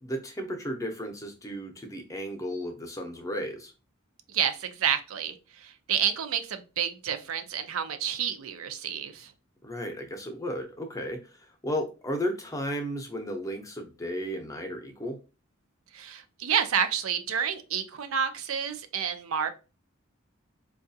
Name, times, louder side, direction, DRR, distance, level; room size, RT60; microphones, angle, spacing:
voice 1, 0.0-3.7 9.6-15.2, equal, 15° left, 4 dB, 0.6 m, -34 dB
voice 2, 4.3-9.3 15.9-19.5, right 8 dB, 85° right, 8 dB, 0.5 m, -29 dB
4.6 x 2.3 x 2.7 m, 0.31 s
head